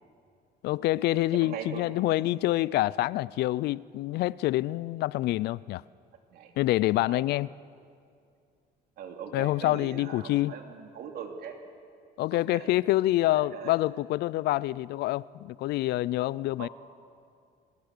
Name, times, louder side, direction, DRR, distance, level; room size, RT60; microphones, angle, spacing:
voice 1, 0.6-5.8 6.6-7.5 9.3-10.5 12.2-16.7, left 16 dB, 75° left, 0.4 m, -27 dB
voice 2, 1.4-2.3 6.3-6.5 7.1-7.3 9.0-11.6 12.3-12.7 13.5-13.9 16.6-16.7, right 7 dB, 70° right, 2.9 m, -41 dB
24.5 x 20.5 x 6.7 m
cardioid pair, 110°, 17 cm